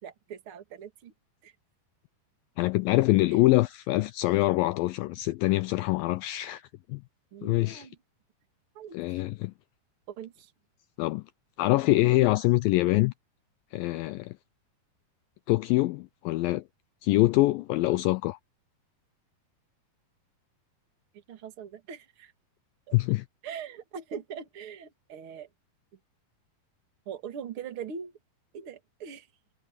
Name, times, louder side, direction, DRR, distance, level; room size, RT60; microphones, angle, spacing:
voice 1, 0.0-1.1 1.4-1.5 3.3-3.4 7.3-8.0 8.7-9.2 10.1-10.5 21.3-22.3 22.9-23.0 23.4-25.5 27.1-28.1 28.5-29.3, right 7 dB, 40° right, 2.5 m, -41 dB
voice 2, 2.6-6.6 6.9-7.0 7.4-7.9 8.9-9.5 11.0-11.2 11.6-13.1 13.7-14.4 15.5-16.6 17.0-18.4 22.9-23.3, left 19 dB, 85° left, 2.1 m, -24 dB
omnidirectional pair, 4.5 m